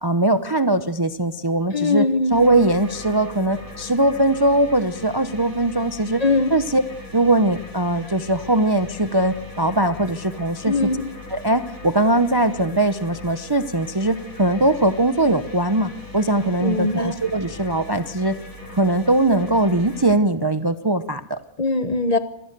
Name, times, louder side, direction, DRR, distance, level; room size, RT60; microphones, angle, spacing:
voice 1, 0.0-2.0 2.3-6.2 6.5-6.8 7.1-10.9 11.3-18.4 18.7-21.4, right 2 dB, 20° right, 10 dB, 0.7 m, -20 dB
voice 2, 1.7-2.4 6.2-6.5 10.6-11.0 16.6-17.2 21.6-22.2, left 3 dB, 30° left, 10 dB, 1.2 m, -21 dB
sound 1, 2.3-20.1, left 2 dB, 75° left, 5.1 m, -39 dB
26.0 x 19.0 x 6.8 m, 0.72 s
omnidirectional pair, 1.4 m